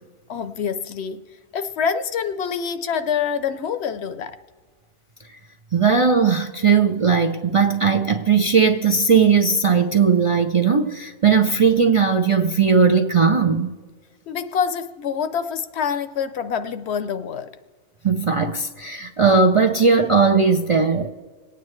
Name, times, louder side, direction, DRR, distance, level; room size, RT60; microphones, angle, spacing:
voice 1, 0.3-1.2 1.5-4.3 14.3-17.5, left 7 dB, 65° left, 0.9 m, -26 dB
voice 2, 5.7-13.7 18.0-21.1, right 5 dB, 40° right, 0.5 m, -18 dB
26.5 x 9.2 x 3.2 m
omnidirectional pair, 1.2 m